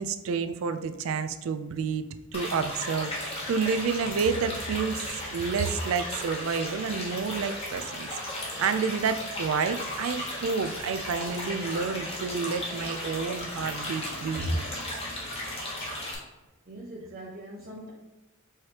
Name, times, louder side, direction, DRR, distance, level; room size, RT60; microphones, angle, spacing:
voice 1, 0.0-2.1 2.3-14.6, right 5 dB, 75° right, 11 dB, 0.3 m, -30 dB
sound 1, 2.3-16.1, left 1 dB, 30° left, 1.0 m, -35 dB
voice 2, 16.7-17.9, equal, 45° right, -5 dB, 0.7 m, -40 dB
4.7 x 3.2 x 2.9 m, 1.1 s
head